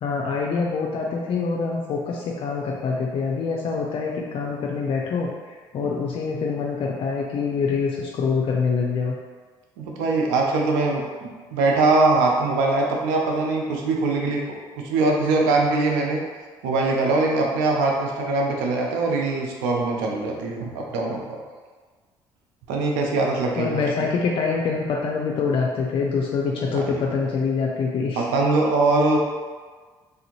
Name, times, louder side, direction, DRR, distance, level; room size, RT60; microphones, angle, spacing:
voice 1, 0.0-5.3 5.7-9.1 23.6-28.2, left 5 dB, 55° left, -1 dB, 0.4 m, -25 dB
voice 2, 9.8-16.2 16.6-21.2 22.7-23.8 26.7-27.0 28.2-29.2, right 3 dB, 90° right, 0 dB, 0.5 m, -22 dB
3.4 x 2.6 x 2.9 m, 1.4 s
supercardioid pair, 70°, 11 cm